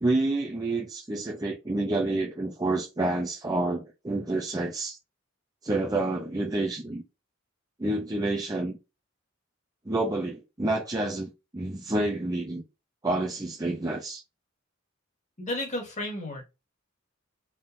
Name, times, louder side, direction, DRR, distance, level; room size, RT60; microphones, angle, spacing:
voice 1, 0.0-5.0 5.6-7.0 7.8-8.8 9.9-12.6 13.0-14.2, right 2 dB, 20° right, 0.6 m, -28 dB
voice 2, 15.4-16.4, left 1 dB, 35° left, 1.9 m, -32 dB
3.9 x 3.8 x 2.6 m
head